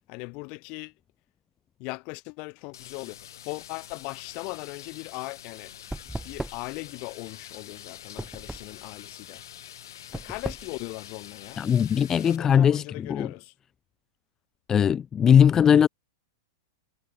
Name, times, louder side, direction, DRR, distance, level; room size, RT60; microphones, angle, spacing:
voice 1, 0.1-0.9 1.8-3.2 3.4-5.7 6.2-9.4 10.1-11.7 12.3-13.5, left 31 dB, 45° left, 1.2 m, -39 dB
sound 1, 2.7-12.4, left 11 dB, 70° left, 2.0 m, -46 dB
sound 2, 4.3-11.8, right 1 dB, 5° right, 0.7 m, -40 dB
voice 2, 11.6-12.8 13.1-13.3 14.7-15.9, left 8 dB, 20° left, 0.4 m, -19 dB
hypercardioid pair, 110°, 2 cm